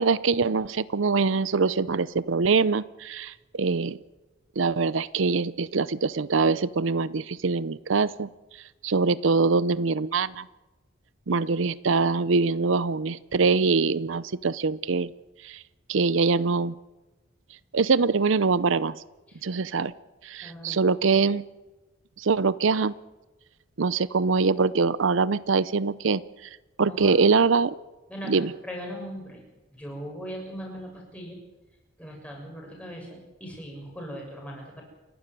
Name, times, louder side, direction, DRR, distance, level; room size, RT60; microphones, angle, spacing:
voice 1, 0.0-4.0 4.6-8.3 8.8-10.4 11.3-15.1 15.4-15.6 15.9-16.7 17.7-19.0 19.4-19.9 20.2-21.4 22.2-22.9 23.8-26.5 26.8-27.7 28.3-28.5, right 4 dB, 75° right, 17 dB, 0.6 m, -23 dB
voice 2, 20.4-20.8 26.9-27.1 28.1-29.4 29.7-31.4 32.0-34.8, equal, 5° left, -1 dB, 7.0 m, -39 dB
28.5 x 12.0 x 9.3 m, 1.1 s
head